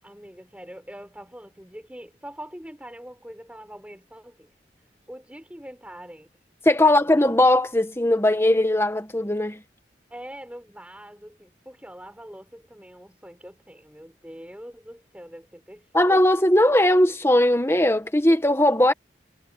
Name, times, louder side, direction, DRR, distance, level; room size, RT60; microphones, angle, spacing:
voice 1, 0.0-4.5 4.8-6.3 6.8-6.9 10.1-16.0, equal, 5° right, 6.5 m, -43 dB
voice 2, 6.6-9.6 15.9-18.9, left 1 dB, 15° left, 1.5 m, -19 dB
head